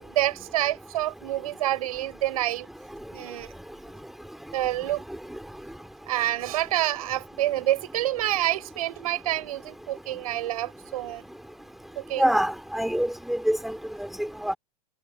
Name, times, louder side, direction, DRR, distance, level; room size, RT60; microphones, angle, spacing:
voice 1, 0.1-2.7 3.1-3.5 4.5-5.0 6.1-11.2 12.0-12.3, right 14 dB, 60° right, 6.7 m, -27 dB
voice 2, 12.2-13.7 14.0-14.1 14.4-14.5, equal, ahead, 4.7 m, -25 dB
figure-of-eight pair, 95°, 21 cm